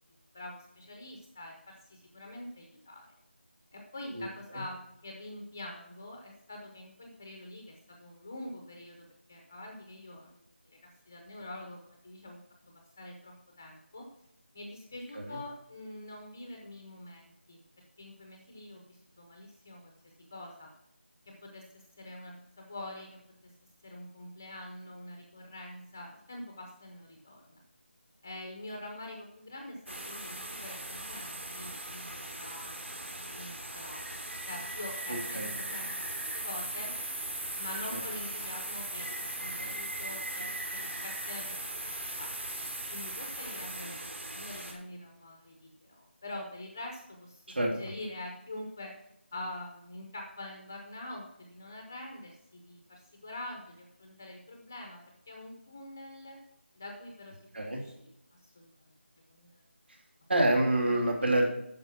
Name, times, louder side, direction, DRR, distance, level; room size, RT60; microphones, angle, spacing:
voice 1, 0.3-3.1 3.7-12.4 13.0-14.1 14.5-17.6 18.0-19.9 20.3-20.7 21.3-23.5 23.8-27.6 28.2-32.7 33.3-34.2 34.5-36.9 37.6-41.6 41.9-42.3 42.9-48.9 49.3-55.0 55.3-56.4 56.8-58.7 59.3-59.6 60.9-61.3, left 1 dB, 10° left, 2 dB, 0.6 m, -45 dB
sound 1, 29.9-44.7, right 1 dB, 85° right, 3.0 m, -39 dB
voice 2, 60.3-61.4, right 1 dB, 60° right, 1 dB, 2.8 m, -26 dB
9.4 x 6.3 x 5.9 m, 0.81 s
figure-of-eight pair, 180°, 6 cm